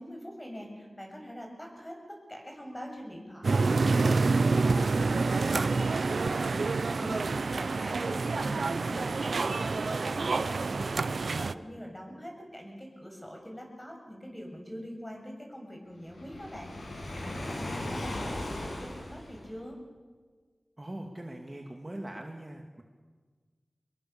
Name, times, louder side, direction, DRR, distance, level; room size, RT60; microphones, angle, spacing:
voice 1, 0.0-16.7 17.1-19.8, equal, 10° left, 1 dB, 7.0 m, -43 dB
sound 1, 3.4-11.5, right 3 dB, 80° right, 0.7 m, -27 dB
Waves surf, 16.1-19.6, left 1 dB, 85° left, 6.5 m, -37 dB
voice 2, 20.8-22.8, right 1 dB, 25° right, 2 dB, 2.2 m, -41 dB
25.5 x 21.0 x 7.0 m, 1.5 s
wide cardioid pair, 70°, 0 cm